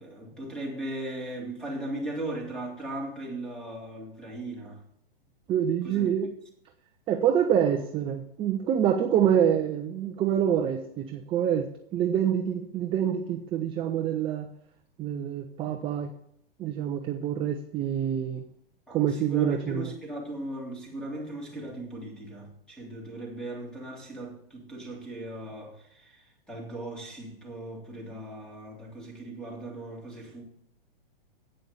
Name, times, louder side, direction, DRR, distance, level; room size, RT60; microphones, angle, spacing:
voice 1, 0.0-4.8 5.8-6.1 18.9-30.4, right 1 dB, 5° left, 3.2 m, -38 dB
voice 2, 5.5-6.3 7.1-14.5 15.0-16.1 16.6-18.4 18.9-19.9, right 9 dB, 20° right, 0.7 m, -26 dB
9.0 x 7.6 x 6.9 m
hypercardioid pair, 135°, 29 cm